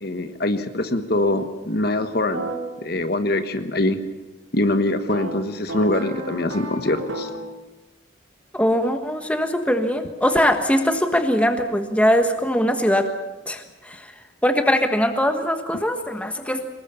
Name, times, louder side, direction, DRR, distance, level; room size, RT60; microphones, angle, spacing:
voice 1, 0.0-2.5 2.8-4.0 4.5-7.3, left 1 dB, 50° left, 8 dB, 1.3 m, -23 dB
sound 1, 2.3-2.6 5.1-7.5, right 1 dB, 85° right, 4.4 m, -32 dB
voice 2, 8.5-13.1 13.5-14.1 14.4-16.6, equal, 5° left, 6 dB, 1.4 m, -21 dB
24.0 x 20.5 x 7.1 m, 1.1 s
head